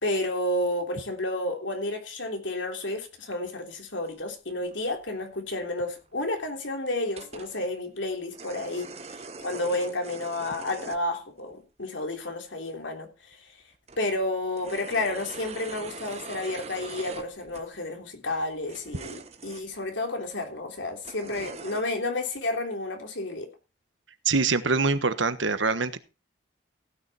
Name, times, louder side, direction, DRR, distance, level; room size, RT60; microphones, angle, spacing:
voice 1, 0.0-8.9 9.4-13.5 14.0-23.5, left 2 dB, 80° left, 3.4 m, -31 dB
sound 1, 4.1-4.2 4.6-4.8 5.1-5.2 5.4-5.5 6.0-6.1 7.1-7.7 8.1-11.0 11.4-11.5 12.8-12.9 13.3-13.4 13.7-17.8 18.3-19.8 20.3-20.4 21.0-21.8, right 4 dB, 35° right, 1.2 m, -43 dB
voice 2, 24.2-26.0, right 4 dB, 85° right, 1.3 m, -24 dB
16.0 x 9.5 x 4.3 m
head